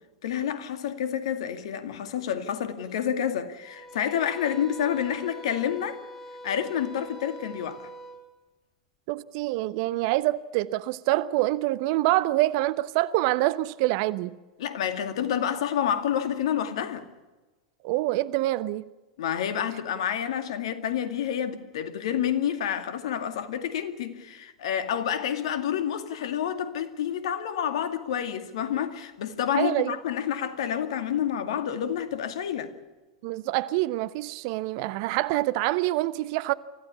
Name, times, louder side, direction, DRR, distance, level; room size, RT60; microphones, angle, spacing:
voice 1, 0.2-6.0 6.4-7.9 14.6-17.1 19.2-32.7, left 9 dB, 65° left, 2.2 m, -29 dB
sound 1, 3.6-8.2, equal, 10° left, 7.5 m, -43 dB
voice 2, 9.1-14.4 17.8-18.8 29.5-30.0 33.2-36.5, right 17 dB, 50° right, 0.9 m, -26 dB
25.0 x 15.5 x 8.4 m
figure-of-eight pair, 95°, 3 cm